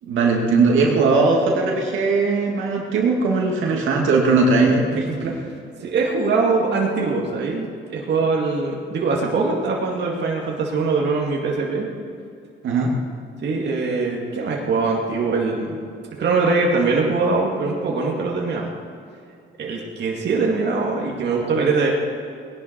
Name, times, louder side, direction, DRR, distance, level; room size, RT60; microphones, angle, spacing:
voice 1, 0.0-5.4 12.6-12.9, right 3 dB, 80° right, -1 dB, 2.5 m, -19 dB
voice 2, 5.8-11.9 13.4-15.7 16.2-18.7 19.6-21.9, right 4 dB, 60° right, -2 dB, 2.3 m, -22 dB
19.0 x 11.0 x 4.6 m, 2.4 s
cardioid pair, 90°, 20 cm